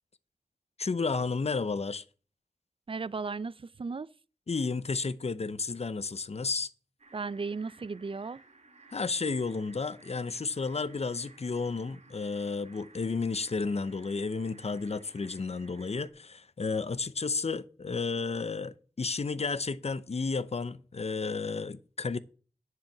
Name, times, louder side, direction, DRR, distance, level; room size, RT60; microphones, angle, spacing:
voice 1, 0.8-2.0 4.5-6.7 8.9-22.2, left 4 dB, 65° left, 0.6 m, -32 dB
voice 2, 2.9-4.1 7.1-8.4, right 4 dB, 50° right, 0.4 m, -35 dB
sound 1, 7.0-16.1, right 3 dB, 80° right, 1.9 m, -57 dB
10.5 x 4.8 x 7.1 m
wide cardioid pair, 50°, 11 cm